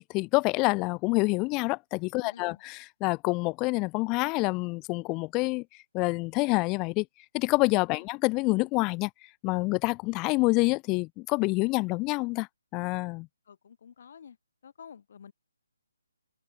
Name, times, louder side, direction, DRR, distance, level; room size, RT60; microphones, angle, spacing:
voice 1, 0.0-2.8 3.0-5.6 5.9-7.1 7.3-9.1 9.4-13.3, left 25 dB, 20° left, 0.4 m, -27 dB
voice 2, 2.2-2.6 8.0-8.1 13.5-14.4 14.6-15.3, left 7 dB, 45° left, 2.4 m, -50 dB
figure-of-eight pair, 140°, 0 cm